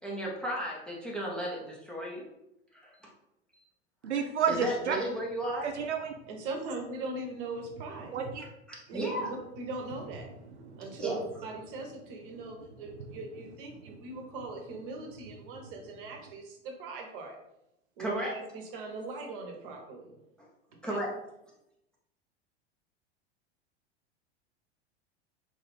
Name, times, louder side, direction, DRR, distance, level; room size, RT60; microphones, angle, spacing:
voice 1, 0.0-2.2 2.7-3.1 3.5-3.6 4.5-5.7 8.4-9.3 11.0-11.2 18.0-18.4 20.8-21.1, right 1 dB, 5° left, -3 dB, 0.4 m, -34 dB
voice 2, 4.0-5.0 5.6-6.1 8.1-8.4 10.7-10.8, right 6 dB, 80° right, 5 dB, 0.5 m, -30 dB
voice 3, 6.3-8.1 8.9-10.3 10.8-17.4 18.0-20.2 20.8-21.0, right 2 dB, 50° right, 3 dB, 0.8 m, -40 dB
3.0 x 2.4 x 3.1 m, 0.86 s
figure-of-eight pair, 85°, 34 cm